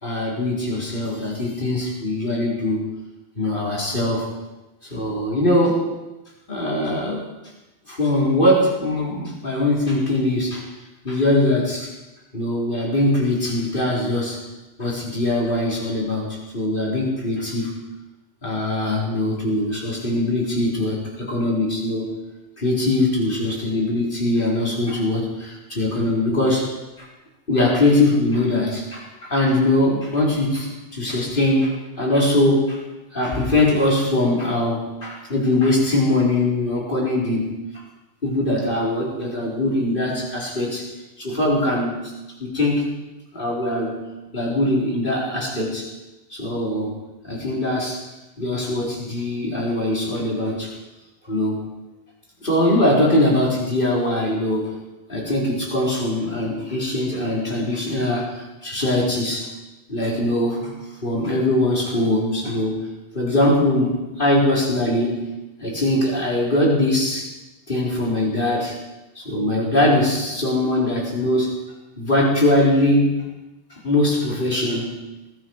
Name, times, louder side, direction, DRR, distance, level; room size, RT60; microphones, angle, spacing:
voice 1, 0.0-2.9 3.4-4.3 4.9-5.8 6.5-7.2 7.9-10.7 11.0-11.9 12.3-14.4 14.8-17.8 18.4-22.1 22.6-26.7 27.0-27.1 27.5-32.8 33.1-37.8 38.2-40.9 41.2-42.0 42.4-42.9 43.3-44.0 44.3-45.9 46.3-46.9 47.2-48.0 48.4-50.7 51.2-51.6 52.4-54.8 55.1-59.5 59.9-60.7 61.0-62.8 63.1-65.1 65.6-67.3 67.7-68.8 69.1-71.5 72.0-73.3 73.8-75.0, left 1 dB, 55° left, -4 dB, 4.6 m, -21 dB
21.0 x 13.0 x 4.8 m, 1.1 s
omnidirectional pair, 1.0 m